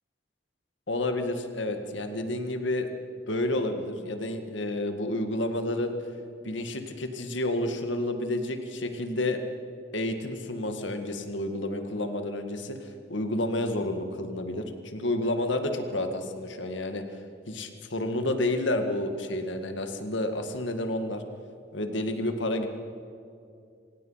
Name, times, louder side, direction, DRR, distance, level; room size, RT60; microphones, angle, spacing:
voice 1, 0.9-2.9 3.3-6.0 6.4-9.4 9.9-17.0 17.5-21.2 21.7-22.7, left 1 dB, 75° left, 6 dB, 2.0 m, -30 dB
26.5 x 17.0 x 5.8 m, 2.4 s
head